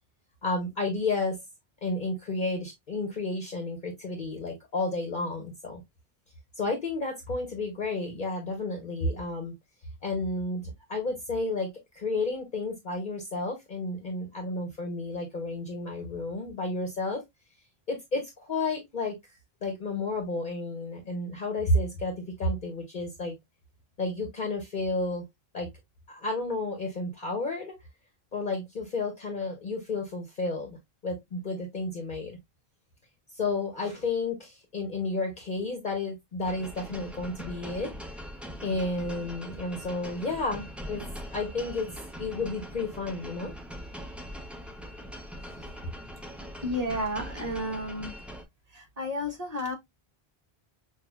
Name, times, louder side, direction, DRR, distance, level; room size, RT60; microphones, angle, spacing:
voice 1, 0.4-1.4 1.8-5.8 6.6-9.5 10.0-10.6 10.9-17.2 17.9-19.2 19.6-23.3 24.0-25.2 25.5-25.7 26.1-27.7 28.3-30.8 31.0-32.4 33.3-37.9 38.6-41.0 41.3-41.9 42.2-43.5 45.5-45.7, left 2 dB, 50° left, 1.1 m, -31 dB
sound 1, 36.4-48.4, equal, ahead, 0.5 m, -42 dB
voice 2, 46.6-48.1 48.7-49.7, left 1 dB, 40° right, 1.2 m, -32 dB
6.0 x 2.5 x 2.3 m
omnidirectional pair, 1.1 m